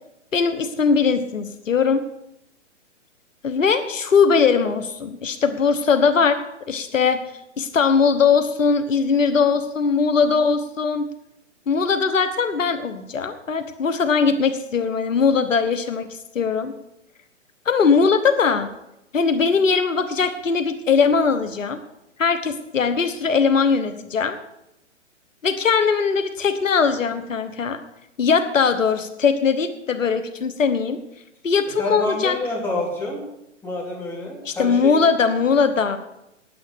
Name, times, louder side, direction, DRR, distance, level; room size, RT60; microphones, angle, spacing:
voice 1, 0.3-2.0 3.4-7.2 7.6-11.1 11.7-16.1 16.3-16.7 17.6-18.7 19.1-21.8 22.2-24.4 25.4-27.8 28.2-31.0 31.4-32.3 34.4-36.0, left 5 dB, 80° left, 10 dB, 1.2 m, -20 dB
voice 2, 31.8-33.2 33.6-34.9, left 2 dB, 5° left, -4 dB, 3.3 m, -28 dB
10.0 x 9.3 x 6.9 m, 0.84 s
hypercardioid pair, 135°, 38 cm